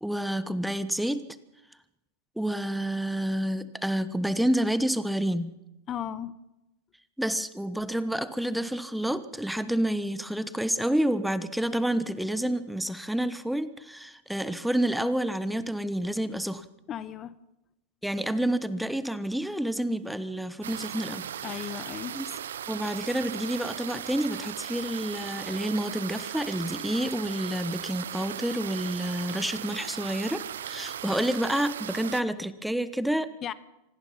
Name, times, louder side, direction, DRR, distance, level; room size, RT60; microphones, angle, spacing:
voice 1, 0.0-1.3 2.4-5.5 7.2-16.6 18.0-21.3 22.1-22.2 22.7-33.5, right 1 dB, ahead, 14 dB, 1.1 m, -29 dB
voice 2, 5.9-6.4 16.9-17.4 21.4-22.2 33.4-33.5, left 10 dB, 30° left, 16 dB, 1.0 m, -35 dB
sound 1, 20.6-32.2, right 10 dB, 75° right, 0.7 m, -37 dB
26.0 x 18.5 x 5.8 m, 0.92 s
hypercardioid pair, 95°, 0 cm